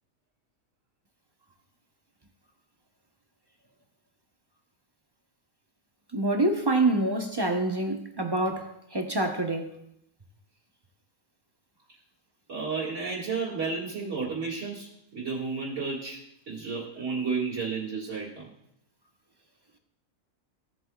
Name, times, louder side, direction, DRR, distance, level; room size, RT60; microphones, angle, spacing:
voice 1, 6.1-9.7, right 2 dB, 25° right, 0.6 m, -26 dB
voice 2, 12.5-16.2 16.5-18.5, right 4 dB, 60° right, 2.3 m, -32 dB
16.0 x 7.7 x 2.3 m
omnidirectional pair, 1.4 m